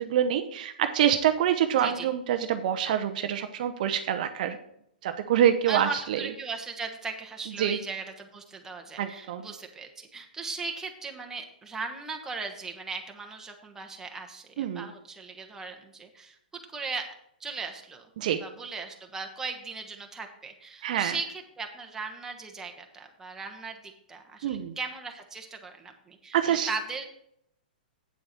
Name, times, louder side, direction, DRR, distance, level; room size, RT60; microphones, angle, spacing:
voice 1, 0.0-4.6 5.0-6.2 7.6-7.8 9.0-9.5 14.6-14.9 18.2-18.4 20.8-21.2 24.4-24.7 26.3-26.7, right 10 dB, 55° right, 8 dB, 0.7 m, -26 dB
voice 2, 1.8-2.1 5.7-17.1 17.4-18.1 18.4-27.0, right 4 dB, 10° right, 3 dB, 1.3 m, -38 dB
8.5 x 7.7 x 4.4 m, 0.74 s
hypercardioid pair, 125°, 5 cm